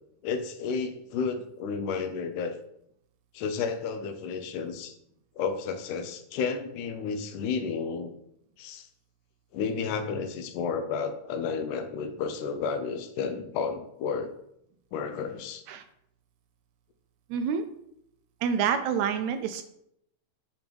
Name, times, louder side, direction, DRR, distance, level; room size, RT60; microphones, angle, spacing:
voice 1, 0.2-2.6 3.3-5.0 5.4-8.1 8.6-8.9 9.5-14.3 14.9-15.6, left 5 dB, 90° left, 8 dB, 2.3 m, -32 dB
voice 2, 17.3-17.7 18.4-19.6, right 7 dB, 80° right, 8 dB, 1.7 m, -27 dB
8.8 x 3.1 x 5.2 m, 0.75 s
omnidirectional pair, 3.5 m